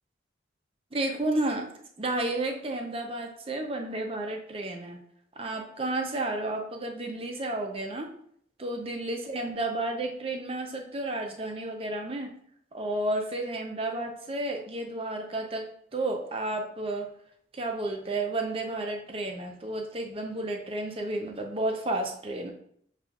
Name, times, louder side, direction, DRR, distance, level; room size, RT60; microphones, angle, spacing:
voice 1, 0.9-1.7 2.0-5.0 5.4-8.1 8.6-12.3 12.7-17.1 17.5-22.5, right 2 dB, 30° right, 3 dB, 0.6 m, -32 dB
6.7 x 2.5 x 2.3 m, 0.64 s
head